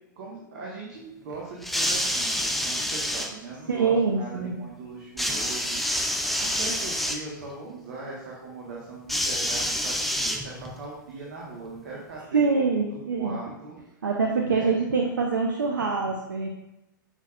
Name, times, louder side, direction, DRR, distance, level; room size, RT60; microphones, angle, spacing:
voice 1, 0.2-12.4 12.9-13.8 14.4-14.8, right 3 dB, 55° right, -3 dB, 1.5 m, -40 dB
sound 1, 1.6-3.3 5.2-7.2 9.1-10.8 11.8-11.9, equal, ahead, 0.5 m, -27 dB
voice 2, 3.7-4.5 12.3-13.3 14.0-16.5, right 4 dB, 70° right, 1 dB, 0.7 m, -24 dB
8.0 x 5.8 x 2.5 m, 0.91 s
figure-of-eight pair, 100°, 11 cm